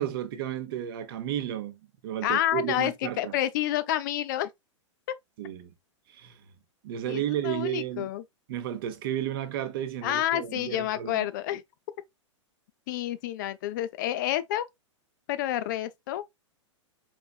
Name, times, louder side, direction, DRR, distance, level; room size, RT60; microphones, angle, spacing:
voice 1, 0.0-3.3 5.4-5.7 6.1-6.4 6.8-8.1 8.5-11.2, right 11 dB, 45° right, 0.7 m, -33 dB
voice 2, 2.2-4.5 7.1-8.2 10.0-11.6 12.9-14.6 15.3-16.2, left 13 dB, 40° left, 0.3 m, -29 dB
4.1 x 3.0 x 2.4 m
figure-of-eight pair, 105°, 16 cm